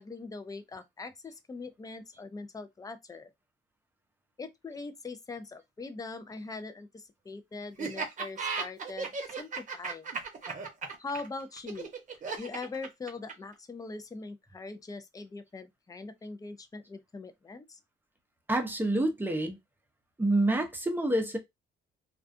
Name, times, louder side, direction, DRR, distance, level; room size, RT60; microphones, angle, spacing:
voice 1, 0.0-3.3 4.4-10.1 11.0-11.9 12.4-17.8, left 3 dB, 20° left, 0.4 m, -42 dB
Laughter, 7.8-13.5, right 5 dB, 40° right, 0.9 m, -35 dB
voice 2, 18.5-19.6 20.2-21.4, right 1 dB, 10° right, 0.7 m, -27 dB
2.4 x 2.2 x 2.5 m
cardioid pair, 90°, 20 cm